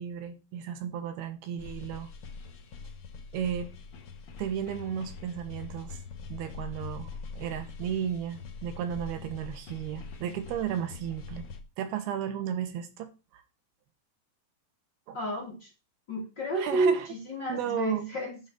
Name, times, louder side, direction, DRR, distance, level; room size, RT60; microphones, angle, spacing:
voice 1, 0.0-2.1 3.3-3.7 4.4-6.0 6.3-11.5 11.8-13.4 15.1-15.2 16.6-17.1 17.5-18.1, right 9 dB, 80° right, 3.0 m, -34 dB
sound 1, 1.6-11.6, left 5 dB, 80° left, 1.2 m, -43 dB
voice 2, 15.1-15.7 16.1-18.4, right 1 dB, 35° left, 2.1 m, -30 dB
10.5 x 4.0 x 7.3 m
omnidirectional pair, 4.5 m